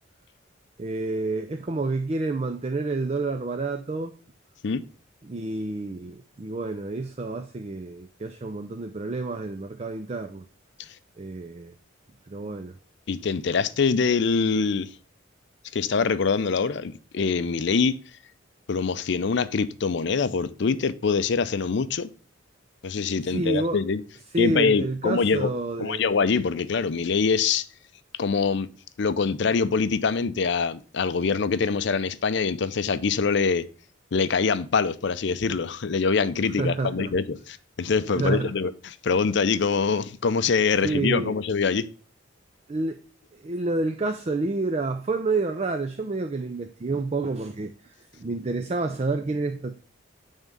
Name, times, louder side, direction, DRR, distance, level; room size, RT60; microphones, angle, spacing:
voice 1, 0.8-4.1 5.2-10.4 11.2-11.7 12.3-12.8 23.2-23.8 24.3-26.0 36.6-37.1 38.1-38.5 40.8-41.4 42.7-43.0 43.3-49.8, right 3 dB, 30° right, 0.4 m, -29 dB
voice 2, 13.1-14.9 15.7-17.9 18.7-22.1 22.8-24.0 24.4-25.5 25.8-27.7 28.2-28.7 29.0-33.6 34.1-41.8, left 5 dB, 60° left, 0.5 m, -24 dB
9.1 x 3.6 x 5.3 m
head